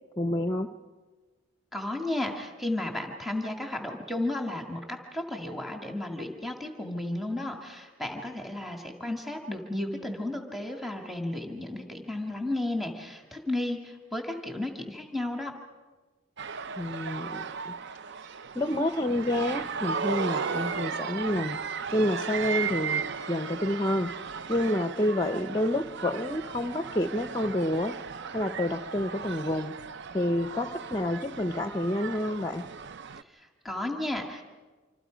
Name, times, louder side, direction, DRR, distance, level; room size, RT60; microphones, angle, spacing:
voice 1, 0.2-0.7 16.8-17.7 18.5-21.6 21.9-23.0 23.3-24.1 24.5-27.9 28.3-29.7 30.1-32.6, left 1 dB, 15° left, 8 dB, 0.7 m, -28 dB
voice 2, 1.7-15.5 33.3-34.4, left 1 dB, ahead, 2 dB, 1.9 m, -33 dB
sound 1, 16.4-33.2, right 6 dB, 55° right, 0.6 m, -36 dB
26.5 x 26.5 x 5.1 m, 1.3 s
head